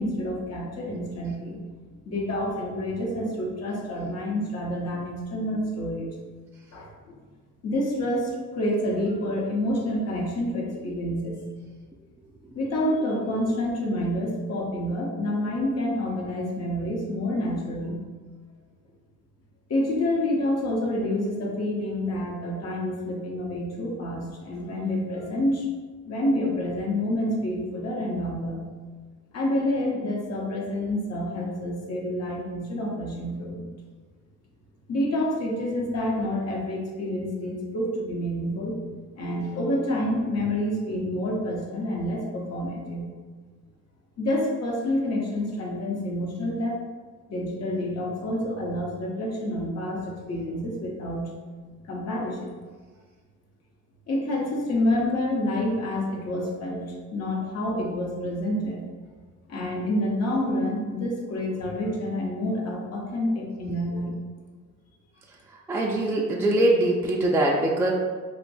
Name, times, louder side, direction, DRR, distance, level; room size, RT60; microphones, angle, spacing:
voice 1, 0.0-1.6 2.0-6.1 6.7-7.1 7.6-11.3 12.5-18.0 19.7-25.7 26.1-28.6 29.3-33.6 34.9-38.7 39.1-43.1 44.2-46.8 47.3-51.3 51.9-52.6 54.1-58.8 59.5-64.1, left 1 dB, 55° left, -2 dB, 0.8 m, -28 dB
voice 2, 65.7-67.9, right 1 dB, 10° right, -1 dB, 0.3 m, -22 dB
2.6 x 2.2 x 4.0 m, 1.5 s
cardioid pair, 90°, 30 cm